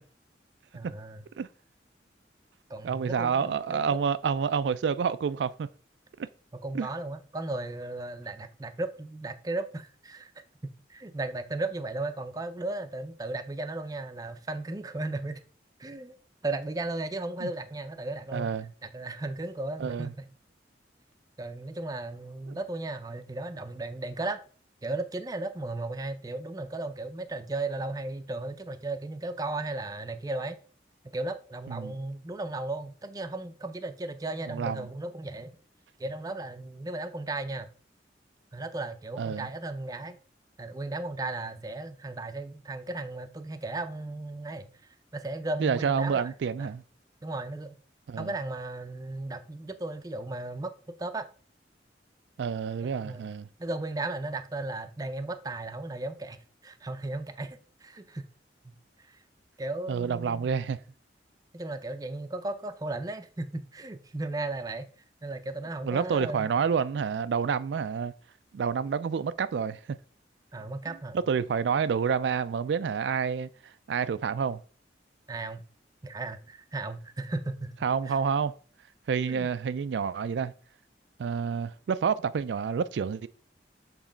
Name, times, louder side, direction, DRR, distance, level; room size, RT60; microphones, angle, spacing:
voice 1, 0.7-1.2 2.7-3.8 6.5-10.3 10.6-15.4 15.8-16.1 16.4-18.5 18.8-20.2 21.4-24.4 24.8-30.6 31.0-35.6 36.0-37.7 38.5-40.2 40.6-46.3 46.6-46.7 47.2-47.8 48.2-50.7 51.0-51.3 53.0-53.2 53.6-58.2 58.6-59.2 59.6-60.6 61.5-64.9 65.2-66.5 70.5-71.2 75.3-75.6 76.0-77.8 78.1-78.2 79.3-79.5, right 2 dB, 20° right, 0.5 m, -35 dB
voice 2, 2.8-5.7 6.7-6.9 17.4-17.5 18.3-18.7 19.8-20.1 22.5-22.6 31.7-31.9 34.5-34.8 39.2-39.4 45.6-46.8 48.1-48.3 52.4-53.5 59.9-60.8 65.8-68.1 68.5-70.0 71.3-73.5 73.9-74.6 77.8-78.5 79.1-80.5 81.2-83.3, right 6 dB, 80° right, 0.3 m, -28 dB
7.3 x 3.1 x 5.0 m
head